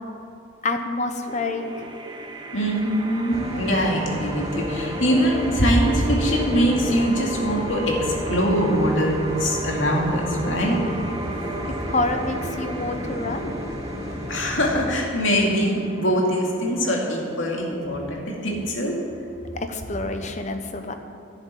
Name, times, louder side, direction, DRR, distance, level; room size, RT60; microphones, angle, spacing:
voice 1, 0.6-1.9 11.8-13.6 19.5-20.9, left 2 dB, 35° left, 6 dB, 0.9 m, -27 dB
sound 1, 1.3-20.2, right 1 dB, 20° right, 0.8 m, -34 dB
voice 2, 2.5-10.8 14.3-19.0, equal, 70° left, -1 dB, 2.4 m, -23 dB
sound 2, 3.3-15.0, equal, 50° left, 1.1 m, -34 dB
11.0 x 7.4 x 9.5 m, 2.7 s
head